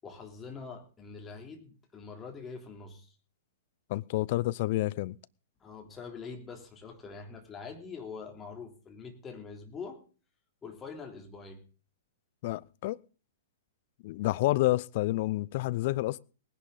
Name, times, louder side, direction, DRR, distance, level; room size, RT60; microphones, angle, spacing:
voice 1, 0.0-3.1 5.6-10.0 10.6-11.6, left 5 dB, 15° left, 3.3 m, -44 dB
voice 2, 3.9-5.2 12.4-13.0 14.0-16.2, left 18 dB, 45° left, 0.6 m, -29 dB
19.0 x 11.0 x 3.9 m
figure-of-eight pair, 110°, 0 cm